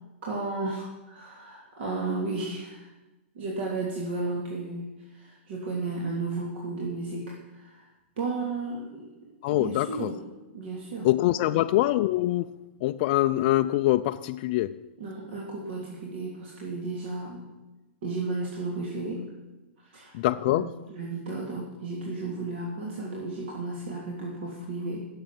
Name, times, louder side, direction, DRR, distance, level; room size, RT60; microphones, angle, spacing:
voice 1, 0.2-2.9 3.3-7.9 8.2-9.1 9.5-10.2 10.5-11.6 15.0-17.4 18.0-19.2 19.8-20.2 20.4-25.0, right 3 dB, 60° right, 3.1 m, -34 dB
voice 2, 9.4-10.1 11.0-12.5 12.8-14.8 20.1-20.8, left 16 dB, 40° left, 0.4 m, -24 dB
16.5 x 7.4 x 7.6 m
hypercardioid pair, 155°, 7 cm